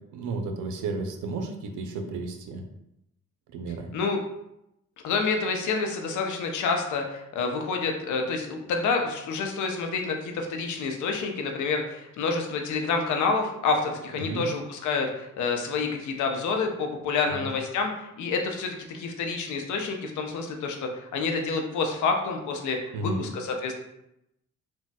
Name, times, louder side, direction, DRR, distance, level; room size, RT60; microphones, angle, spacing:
voice 1, 0.1-2.6 3.5-3.9 14.2-14.5 17.3-17.5 22.9-23.2, right 3 dB, 85° right, 5 dB, 0.5 m, -33 dB
voice 2, 5.0-23.7, left 4 dB, 75° left, 3 dB, 0.6 m, -28 dB
4.1 x 2.2 x 2.2 m, 0.84 s
cardioid pair, 90°, 30 cm